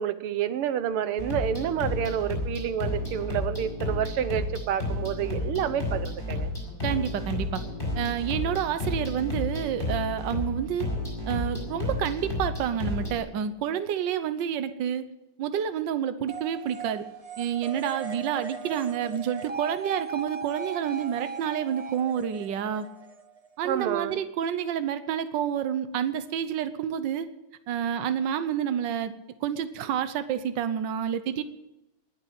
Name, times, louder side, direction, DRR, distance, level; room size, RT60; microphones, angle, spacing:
voice 1, 0.0-6.5 8.5-8.6 23.6-24.2, right 9 dB, 85° right, 13 dB, 1.8 m, -29 dB
sound 1, 1.2-13.2, left 2 dB, 25° left, 6.8 m, -31 dB
voice 2, 6.8-7.6 7.9-10.9 11.3-15.0 15.4-17.0 17.4-22.9 23.6-27.3 27.7-29.1 29.4-31.4, right 9 dB, 60° right, 11 dB, 1.5 m, -29 dB
sound 2, 16.3-23.8, right 5 dB, 45° right, 0.4 m, -38 dB
20.0 x 7.3 x 8.7 m, 0.95 s
omnidirectional pair, 2.4 m